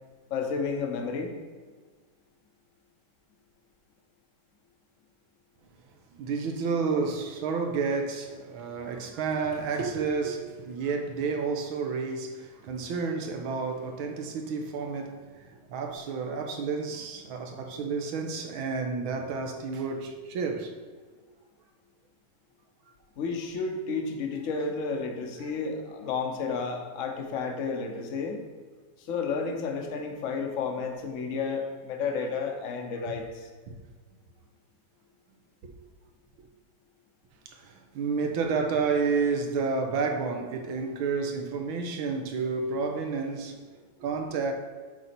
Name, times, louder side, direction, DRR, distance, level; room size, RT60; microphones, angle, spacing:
voice 1, 0.3-1.3 23.2-28.4 29.0-33.5, left 5 dB, 50° left, 1.1 m, -31 dB
voice 2, 6.1-20.7 33.1-33.2 33.7-33.8 35.6-35.7 37.5-43.6 44.0-44.5, right 4 dB, 80° right, 1.7 m, -30 dB
8.1 x 4.1 x 5.9 m
omnidirectional pair, 2.2 m